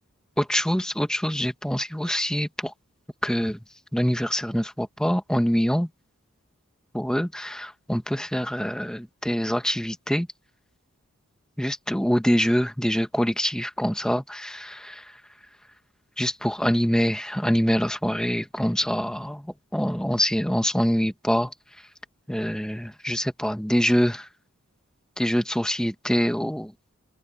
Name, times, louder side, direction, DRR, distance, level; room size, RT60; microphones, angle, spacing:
voice 1, 0.4-2.7 3.2-3.6 3.9-5.9 6.9-10.3 11.6-15.0 16.2-19.4 19.7-21.5 22.3-24.3 25.2-26.7, equal, 5° left, 1.2 m, -25 dB
open air
head